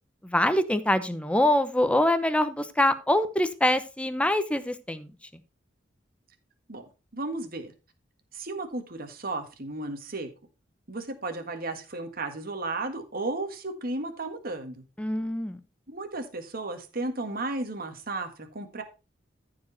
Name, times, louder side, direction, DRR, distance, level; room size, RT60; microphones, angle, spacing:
voice 1, 0.2-5.1 15.0-15.6, left 1 dB, 5° left, 11 dB, 0.8 m, -24 dB
voice 2, 6.7-7.7 8.3-10.3 10.9-14.8 15.9-18.8, right 2 dB, 50° right, 7 dB, 1.7 m, -34 dB
14.0 x 4.9 x 4.1 m, 0.30 s
head